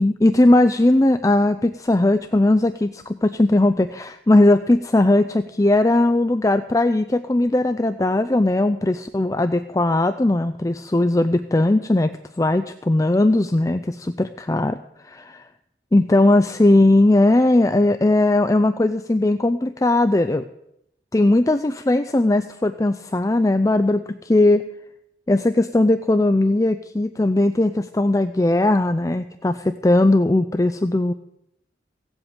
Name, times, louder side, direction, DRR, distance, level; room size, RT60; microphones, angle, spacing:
voice 1, 0.0-12.1 12.4-14.8 15.0-15.4 15.9-20.4 21.1-24.6 25.3-31.1, left 2 dB, 20° left, 10 dB, 0.4 m, -18 dB
16.0 x 7.9 x 8.8 m, 0.80 s
head